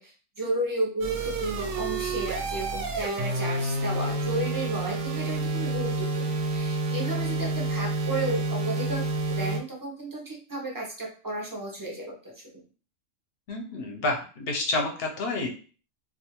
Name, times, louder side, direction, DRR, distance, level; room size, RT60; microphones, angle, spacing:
voice 1, 0.0-9.1 9.4-12.5, right 1 dB, 30° right, -1 dB, 0.4 m, -33 dB
sound 1, 1.0-9.6, right 2 dB, 85° right, 1.0 m, -29 dB
voice 2, 13.5-15.5, left 2 dB, 60° left, 1 dB, 0.7 m, -29 dB
2.5 x 2.3 x 2.8 m, 0.39 s
omnidirectional pair, 1.4 m